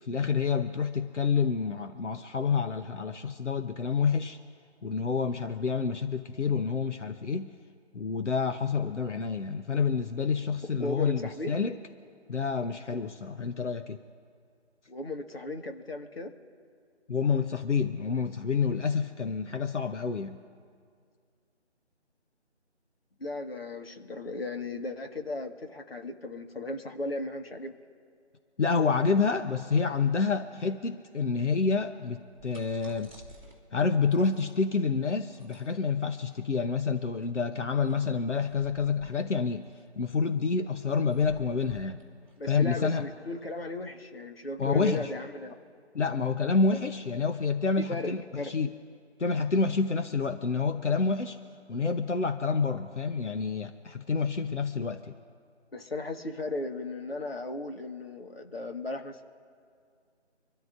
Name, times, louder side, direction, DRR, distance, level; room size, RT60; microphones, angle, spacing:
voice 1, 0.0-4.4 4.8-7.5 7.9-11.8 12.3-14.0 17.1-20.4 28.6-33.1 33.7-39.7 39.9-42.0 42.5-43.1 44.6-45.1 45.9-48.7 49.2-51.4 51.7-55.1, left 5 dB, 85° left, 7 dB, 1.0 m, -28 dB
voice 2, 10.8-11.5 14.9-16.3 23.2-27.8 42.4-45.6 47.8-48.5 55.7-59.2, left 2 dB, 55° left, 4 dB, 1.8 m, -36 dB
sound 1, 32.2-43.5, equal, 5° left, 1.7 m, -55 dB
26.5 x 13.0 x 2.6 m, 2.2 s
figure-of-eight pair, 170°, 35 cm